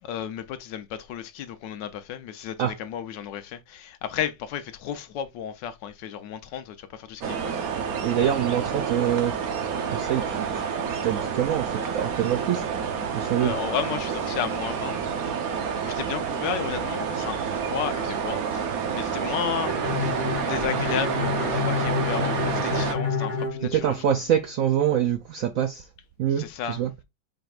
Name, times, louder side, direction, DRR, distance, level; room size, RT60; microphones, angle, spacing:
voice 1, 0.0-7.6 13.4-15.0 15.8-24.2 26.4-26.8, left 9 dB, 80° left, 1.3 m, -33 dB
sound 1, 7.2-22.9, right 6 dB, 60° right, 1.1 m, -29 dB
voice 2, 7.7-9.4 9.8-10.6 10.9-12.7 13.1-13.5 23.7-25.8 26.2-26.9, right 10 dB, 80° right, 0.7 m, -25 dB
Bowed string instrument, 19.6-24.5, left 5 dB, 35° left, 0.8 m, -29 dB
5.0 x 4.4 x 2.4 m
omnidirectional pair, 1.9 m